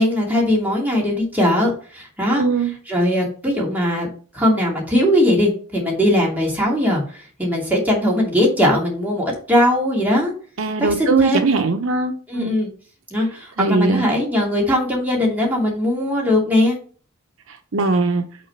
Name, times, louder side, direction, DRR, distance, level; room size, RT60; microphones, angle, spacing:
voice 1, 0.0-2.4 2.9-4.1 4.3-10.3 10.8-11.5 12.3-12.7 13.1-16.8, left 1 dB, 10° right, -4 dB, 2.7 m, -19 dB
voice 2, 2.4-2.7 10.6-12.6 13.6-14.0 17.7-18.2, right 3 dB, 65° right, 6 dB, 0.7 m, -19 dB
6.3 x 4.0 x 5.7 m, 0.40 s
head